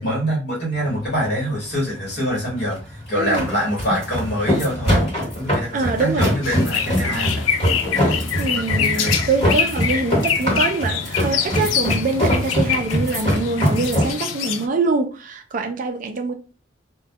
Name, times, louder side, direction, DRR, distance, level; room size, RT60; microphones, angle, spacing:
voice 1, 0.0-5.0 5.3-7.5 8.5-9.3, equal, 55° left, 1.0 m, -25 dB
sound 1, 0.7-14.1, equal, 30° left, 1.2 m, -23 dB
voice 2, 3.2-3.5 5.7-6.3 8.4-16.3, right 3 dB, 40° right, 0.3 m, -24 dB
sound 2, 6.4-14.7, left 8 dB, 85° left, 0.3 m, -25 dB
2.2 x 2.1 x 2.6 m
head